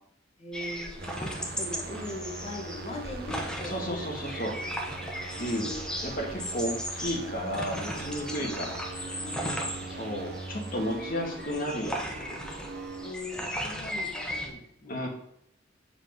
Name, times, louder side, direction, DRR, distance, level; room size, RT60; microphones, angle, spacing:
voice 1, 0.4-4.0 5.3-5.9 8.4-8.6 9.2-9.7 13.0-15.1, left 2 dB, 30° left, -1 dB, 1.7 m, -40 dB
sound 1, 0.5-14.5, equal, 5° left, 1.1 m, -37 dB
sound 2, 1.0-13.1, right 3 dB, 55° right, 0.9 m, -41 dB
voice 2, 3.6-4.6 5.4-5.7 6.0-8.8 10.0-12.4 14.9-15.1, equal, 50° left, 0 dB, 1.8 m, -33 dB
7.8 x 4.9 x 5.2 m, 0.76 s
head